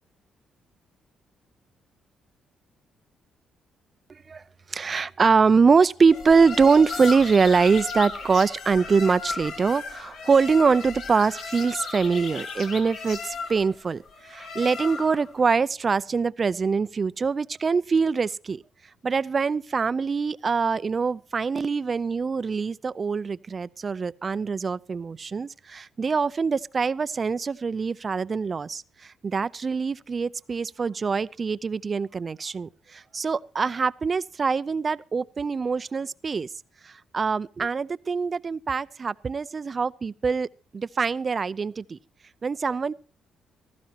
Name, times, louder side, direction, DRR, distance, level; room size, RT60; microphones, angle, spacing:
voice 1, 4.1-4.4 4.7-18.6 19.0-36.5 36.8-42.0 42.4-42.9, right 5 dB, 35° right, 0.5 m, -24 dB
sound 1, 6.1-15.3, left 4 dB, 80° left, 3.0 m, -35 dB
17.0 x 15.0 x 2.9 m
cardioid pair, 90°, 0 cm